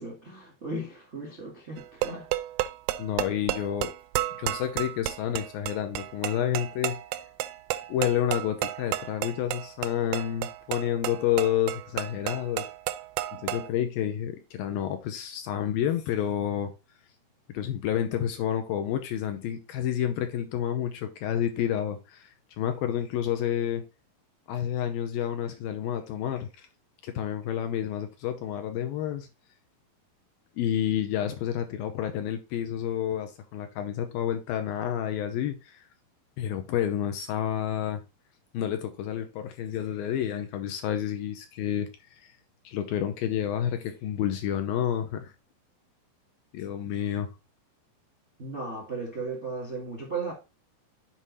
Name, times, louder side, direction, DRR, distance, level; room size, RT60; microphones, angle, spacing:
voice 1, 0.0-2.3 48.4-50.3, right 3 dB, 40° right, 0.9 m, -36 dB
sound 1, 1.8-13.7, right 15 dB, 85° right, 2.1 m, -32 dB
voice 2, 3.0-3.9 4.4-7.0 7.9-12.7 13.3-16.7 17.5-22.3 22.6-23.9 24.5-26.7 27.0-29.3 30.6-35.9 36.4-38.0 38.5-42.3 42.6-45.3 46.5-47.3, left 10 dB, 80° left, 2.2 m, -29 dB
7.5 x 4.8 x 4.0 m
omnidirectional pair, 4.6 m